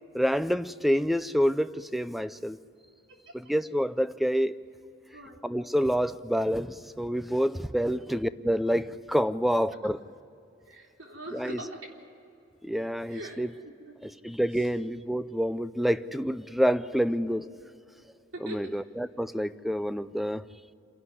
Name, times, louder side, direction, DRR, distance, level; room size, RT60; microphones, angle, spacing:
voice 1, 0.1-2.6 3.3-4.6 5.4-10.0 11.3-11.6 12.6-13.5 14.2-17.5 18.4-20.5, equal, ahead, 14 dB, 0.4 m, -27 dB
voice 2, 5.1-5.4 7.9-8.0 10.6-11.9 13.0-13.9 14.5-14.7 18.3-18.6, right 1 dB, 80° right, 0 dB, 3.5 m, -42 dB
27.0 x 11.5 x 9.6 m, 2.7 s
head